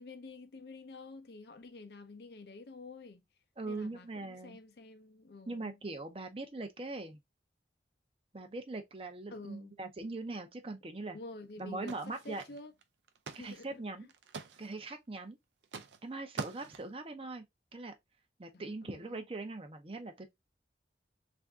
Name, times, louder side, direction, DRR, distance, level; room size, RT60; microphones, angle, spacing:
voice 1, 0.0-3.2 3.6-5.8 9.3-9.7 11.1-12.7 13.4-13.8 18.5-19.3, left 3 dB, 65° left, 0.6 m, -49 dB
voice 2, 3.6-4.6 5.5-7.2 8.3-11.2 11.6-12.4 13.3-14.1 14.6-15.4 16.0-17.4 17.7-17.9 18.4-20.3, right 2 dB, 30° right, 0.5 m, -41 dB
sound 1, 11.6-11.7 11.9-12.8 13.1-13.6 13.9-14.8 15.6-16.0 16.4-17.0, right 4 dB, 80° right, 0.5 m, -44 dB
3.4 x 2.6 x 3.5 m
head